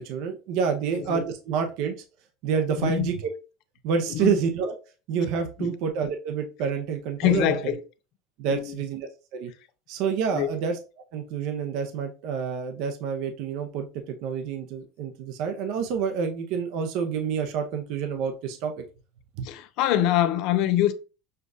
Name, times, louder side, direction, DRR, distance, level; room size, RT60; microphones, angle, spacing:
voice 1, 0.0-2.0 2.4-3.3 3.8-4.7 5.1-7.7 8.4-9.5 9.9-10.8 11.1-18.8 19.4-19.5, right 6 dB, 65° right, 0.6 m, -28 dB
voice 2, 1.0-1.3 2.8-3.1 4.1-4.3 5.6-5.7 7.2-7.8 8.5-8.8 10.3-10.5 19.4-20.9, left 12 dB, 65° left, 0.5 m, -24 dB
6.6 x 2.4 x 2.6 m
supercardioid pair, 125°, 0 cm